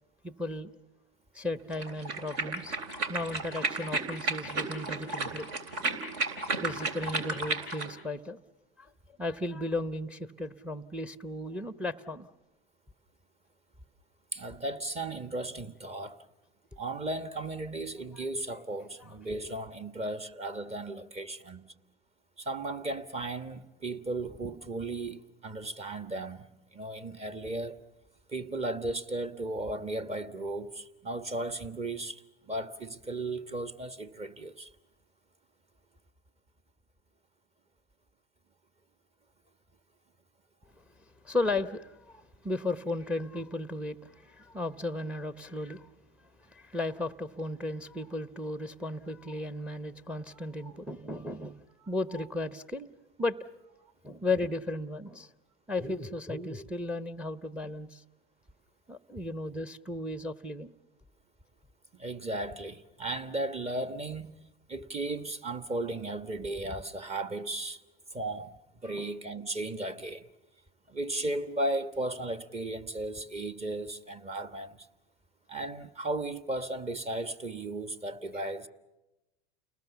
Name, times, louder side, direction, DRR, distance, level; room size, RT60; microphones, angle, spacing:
voice 1, 0.2-0.7 1.3-5.5 6.6-8.4 8.8-8.9 9.2-12.3 19.0-19.1 40.8-40.9 41.2-45.9 46.4-52.9 53.2-53.4 54.0-55.3 55.7-58.0 58.9-60.7 68.8-69.1, left 2 dB, 5° right, 0.8 m, -35 dB
sound 1, 1.7-7.9, right 3 dB, 60° right, 3.3 m, -33 dB
voice 2, 14.3-16.2 16.8-21.7 22.4-27.8 28.3-34.7 62.0-64.4 64.7-67.8 68.1-68.5 68.8-70.3 70.9-74.9 75.5-78.7, right 2 dB, 20° right, 1.4 m, -35 dB
29.5 x 20.0 x 7.1 m
hypercardioid pair, 100°, 29 cm